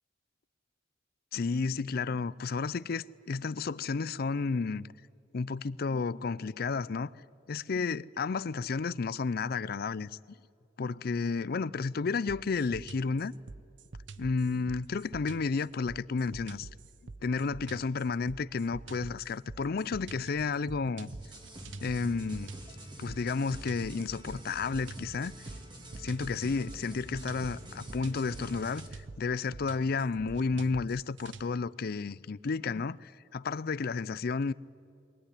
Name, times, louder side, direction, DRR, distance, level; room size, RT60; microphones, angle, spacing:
voice 1, 1.3-4.9 5.3-7.1 7.5-10.1 10.8-13.3 14.2-16.7 17.2-21.1 21.8-22.5 23.0-25.3 26.0-28.9 29.2-34.5, left 4 dB, 55° left, 0.5 m, -32 dB
sound 1, 12.3-31.5, right 3 dB, 80° right, 0.8 m, -46 dB
sound 2, 21.1-28.9, right 1 dB, 25° right, 2.6 m, -46 dB
22.5 x 17.5 x 9.9 m
head